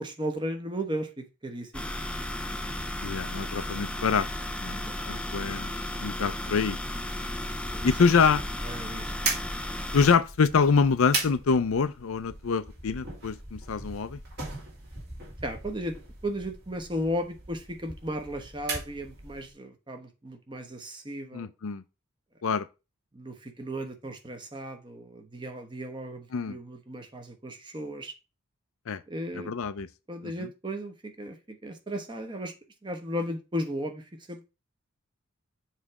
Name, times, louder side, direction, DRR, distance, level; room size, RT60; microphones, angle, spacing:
voice 1, 0.0-1.9 4.7-5.4 7.7-7.9 8.6-9.1 15.4-16.0 16.2-21.5 23.1-28.1 29.1-29.5 30.1-32.5 32.8-34.4, equal, 20° right, 1.0 m, -35 dB
sound 1, 1.7-10.1, left 1 dB, 5° left, 0.4 m, -34 dB
voice 2, 3.0-4.3 4.6-4.8 5.1-5.7 6.0-6.8 7.8-8.4 9.9-14.2 21.3-21.8 22.4-22.6 26.3-26.6 28.9-29.0 29.3-29.9, left 5 dB, 70° left, 0.5 m, -25 dB
sound 2, 9.2-19.5, right 3 dB, 45° right, 2.6 m, -38 dB
7.2 x 3.2 x 4.8 m
head